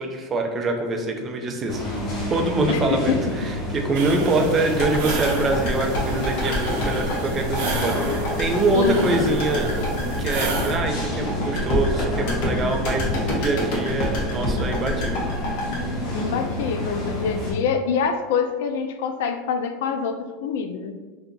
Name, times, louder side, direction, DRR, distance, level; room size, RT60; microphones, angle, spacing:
voice 1, 0.0-1.9 2.3-9.9 10.2-15.2, right 2 dB, 25° right, 3 dB, 0.4 m, -24 dB
sound 1, 1.7-17.5, left 1 dB, 35° left, 1.2 m, -29 dB
voice 2, 2.7-3.2 8.7-9.4 16.1-21.1, left 6 dB, 85° left, 7 dB, 0.3 m, -25 dB
sound 2, 3.9-10.8, right 3 dB, 75° right, 0.5 m, -32 dB
sound 3, 4.8-17.0 17.2-17.3, left 1 dB, 65° left, 1.0 m, -28 dB
2.7 x 2.4 x 3.7 m, 1.3 s
supercardioid pair, 150°, 0 cm